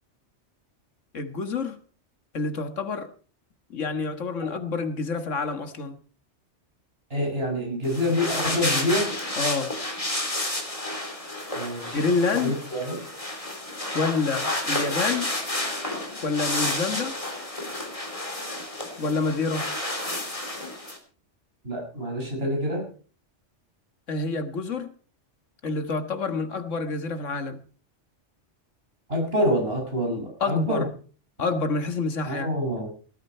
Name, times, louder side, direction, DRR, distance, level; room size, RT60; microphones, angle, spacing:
voice 1, 1.1-1.8 2.3-3.1 3.7-6.0 9.4-9.7 11.9-12.6 13.9-15.3 16.2-17.2 19.0-19.7 24.1-24.9 25.6-27.6 30.4-30.9 31.4-32.5, left 4 dB, 85° left, 9 dB, 1.9 m, -27 dB
voice 2, 7.1-9.1 11.5-12.0 12.3-13.0 21.6-22.9 29.1-30.8 32.2-32.9, equal, 55° right, 1 dB, 6.7 m, -26 dB
sound 1, 7.8-21.0, left 1 dB, 25° left, 3.2 m, -30 dB
18.5 x 12.0 x 4.5 m, 0.41 s
omnidirectional pair, 1.2 m